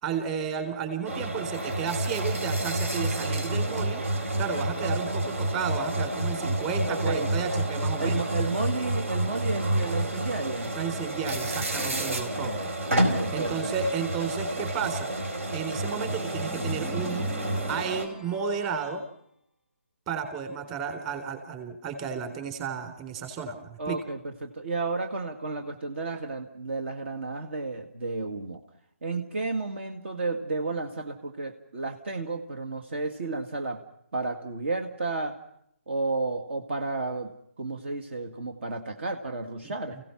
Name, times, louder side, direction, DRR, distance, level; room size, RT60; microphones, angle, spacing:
voice 1, 0.0-4.0 4.4-8.2 10.8-12.5 13.3-15.1 15.5-17.3 17.7-19.0 20.1-24.0 39.6-39.7, right 6 dB, 20° right, 6 dB, 3.9 m, -32 dB
sound 1, 1.1-18.1, right 1 dB, 70° right, 4.8 m, -29 dB
voice 2, 6.9-7.3 8.0-10.8 11.8-13.9 23.8-28.6 29.0-33.8 34.1-35.4 35.9-40.0, right 3 dB, 55° right, 5 dB, 2.0 m, -32 dB
sound 2, 16.1-19.1, left 1 dB, 5° right, 1.4 m, -44 dB
29.5 x 17.0 x 5.9 m, 0.71 s
hypercardioid pair, 155°, 8 cm